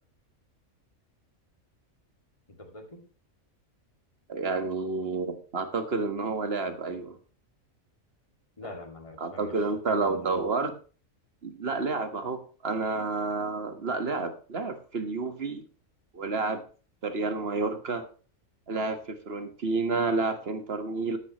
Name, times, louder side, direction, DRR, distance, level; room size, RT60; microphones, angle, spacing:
voice 1, 2.6-3.1 8.6-9.6 9.9-10.4, left 1 dB, 25° left, 3 dB, 2.5 m, -43 dB
voice 2, 4.3-7.2 9.2-10.7 11.4-15.6 16.1-16.6 17.0-18.0 18.7-21.2, right 3 dB, 45° right, 8 dB, 1.7 m, -30 dB
13.5 x 10.5 x 3.1 m, 0.38 s
omnidirectional pair, 1.4 m